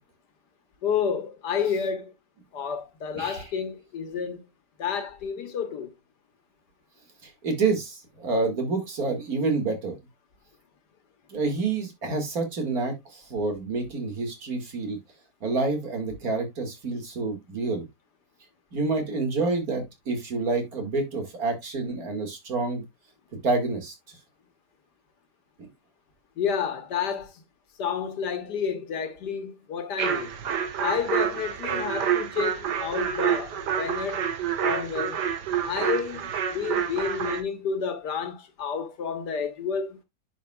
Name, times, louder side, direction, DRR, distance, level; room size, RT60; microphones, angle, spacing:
voice 1, 0.8-2.1 2.5-4.4 4.8-5.9 26.4-27.3 27.8-30.3 30.8-34.2 34.6-35.2 35.6-40.0, left 7 dB, 75° left, 1.7 m, -30 dB
voice 2, 3.1-3.5 7.2-10.0 11.3-15.0 15.4-17.8 18.7-22.8 23.4-23.9, right 3 dB, 55° right, 2.4 m, -28 dB
sound 1, 30.0-37.4, right 8 dB, 75° right, 1.6 m, -28 dB
10.5 x 5.5 x 2.3 m
omnidirectional pair, 1.8 m